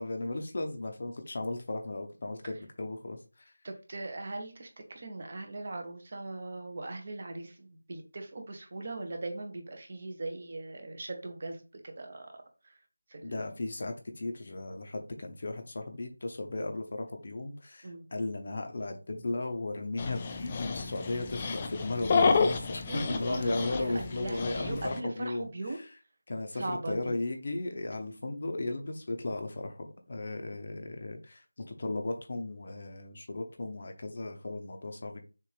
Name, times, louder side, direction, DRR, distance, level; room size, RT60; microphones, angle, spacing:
voice 1, 0.0-3.5 13.2-25.5 26.3-35.2, left 2 dB, 35° left, 5 dB, 0.7 m, -35 dB
voice 2, 3.6-12.4 12.6-12.8 13.1-13.4 17.8-18.1 22.9-25.8 26.5-27.2, right 2 dB, 30° right, 4 dB, 0.7 m, -40 dB
Dog, 20.0-25.0, left 4 dB, 15° left, 0.3 m, -30 dB
6.7 x 2.5 x 3.2 m, 0.33 s
figure-of-eight pair, 175°, 0 cm